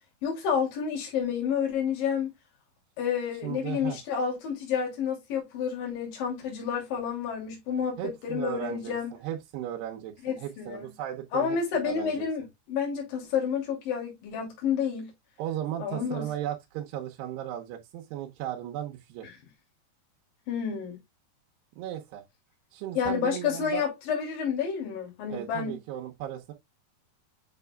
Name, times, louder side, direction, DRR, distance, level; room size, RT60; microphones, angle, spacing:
voice 1, 0.2-2.3 3.0-9.1 10.2-10.9 11.3-15.1 15.8-16.2 20.5-21.0 23.0-25.8, left 7 dB, 55° left, 4.2 m, -30 dB
voice 2, 3.4-4.0 8.0-12.2 15.4-19.3 21.8-22.2 22.7-23.9 25.3-26.5, right 11 dB, 80° right, 3.0 m, -36 dB
8.1 x 5.8 x 2.2 m
omnidirectional pair, 4.8 m